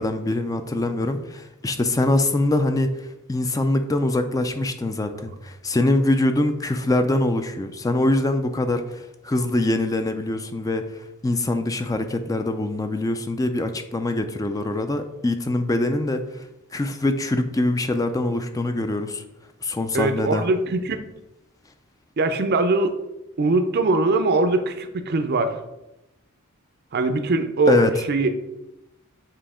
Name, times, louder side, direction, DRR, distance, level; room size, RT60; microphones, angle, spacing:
voice 1, 0.0-16.4 16.7-19.2 19.6-20.5 27.7-27.9, left 2 dB, 15° left, 7 dB, 0.4 m, -23 dB
voice 2, 19.9-21.0 22.2-23.0 23.4-25.6 26.9-27.8 28.1-28.4, right 3 dB, 50° right, 9 dB, 0.5 m, -21 dB
7.5 x 2.8 x 4.9 m, 0.94 s
head